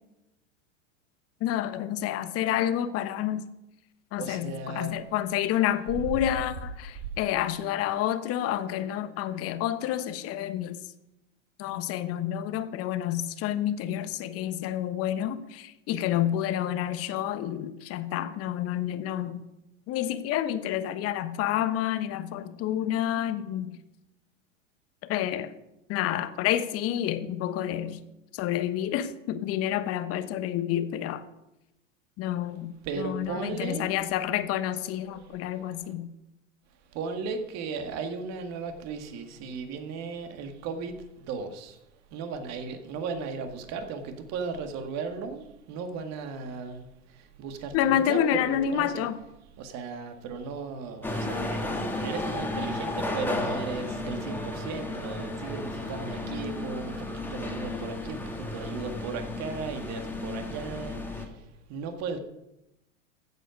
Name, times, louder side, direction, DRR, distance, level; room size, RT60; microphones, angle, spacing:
voice 1, 1.4-3.4 4.1-10.8 11.6-19.4 19.9-23.7 25.1-25.5 25.9-28.0 28.3-31.2 32.2-36.1 47.7-49.2, left 11 dB, 40° left, 12 dB, 1.1 m, -29 dB
voice 2, 4.2-5.0 7.0-7.1 32.8-33.9 35.0-35.9 36.9-41.8 42.1-49.0 49.6-62.2, right 5 dB, 45° right, 6 dB, 2.0 m, -36 dB
sound 1, 51.0-61.3, left 2 dB, 5° left, 1.8 m, -33 dB
14.5 x 8.0 x 5.2 m, 0.91 s
hypercardioid pair, 100°, 38 cm